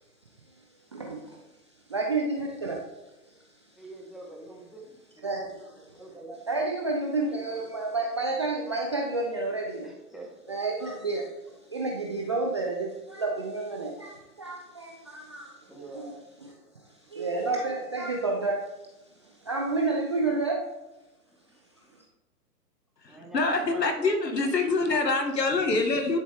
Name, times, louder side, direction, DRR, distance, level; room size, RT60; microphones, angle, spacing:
voice 1, 0.9-1.4 1.9-2.9 5.2-6.0 6.5-9.9 10.5-16.1 17.1-18.7 19.4-20.7, right 3 dB, 20° right, 0 dB, 0.4 m, -30 dB
voice 2, 3.8-4.9 5.1-5.2 5.9-6.4 7.5-7.6 9.8-10.5 15.7-16.2 16.6-16.7 17.0-17.2 19.2-19.5 21.3-21.7 23.0-24.4, right 2 dB, ahead, -1 dB, 1.3 m, -46 dB
voice 3, 23.0-26.2, left 3 dB, 80° left, 5 dB, 1.7 m, -25 dB
11.0 x 6.6 x 3.4 m, 1.0 s
figure-of-eight pair, 120°, 49 cm